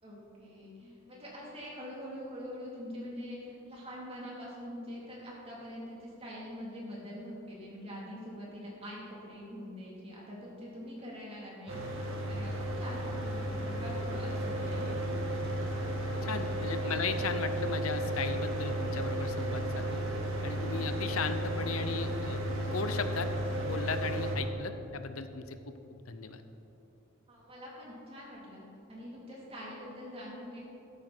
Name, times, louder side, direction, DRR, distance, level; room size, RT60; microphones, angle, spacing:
voice 1, 0.0-15.0 16.8-17.0 27.3-30.6, equal, 30° right, -5 dB, 3.7 m, -44 dB
Mechanical fan, 11.7-24.4, right 1 dB, 70° right, 2.0 m, -33 dB
voice 2, 16.2-20.0 20.4-23.3 23.6-26.4, left 4 dB, 85° left, 9 dB, 0.9 m, -37 dB
13.5 x 13.0 x 4.6 m, 2.8 s
head